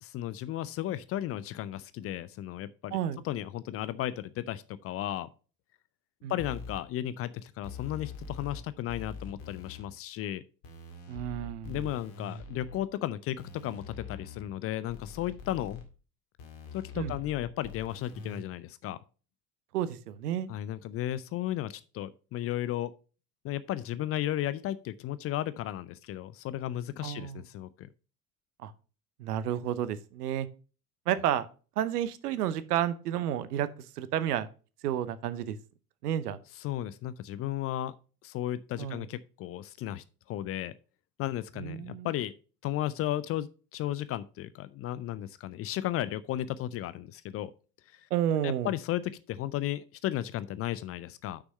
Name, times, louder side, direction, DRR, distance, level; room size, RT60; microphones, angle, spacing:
voice 1, 0.0-3.0 3.2-5.3 6.3-10.4 11.7-15.8 16.7-19.0 20.5-22.9 23.4-27.9 36.6-38.0 38.2-40.7 41.2-42.3 42.6-47.5 47.9-48.1 48.4-51.4, left 13 dB, 30° left, 0.4 m, -34 dB
sound 1, 6.4-6.8 7.6-8.6 8.9-9.8 10.6-12.8 13.4-14.5 14.9-15.8 16.4-18.4, left 4 dB, 60° left, 2.1 m, -44 dB
voice 2, 11.1-11.9 17.0-17.1 19.7-20.5 27.0-27.4 28.6-28.7 29.2-30.5 31.1-31.5 31.8-33.7 34.0-34.5 34.8-35.6 36.0-36.4 38.8-39.0 41.6-42.1 48.1-48.7, right 10 dB, 75° right, 0.8 m, -31 dB
6.2 x 6.1 x 5.4 m
figure-of-eight pair, 65°, 48 cm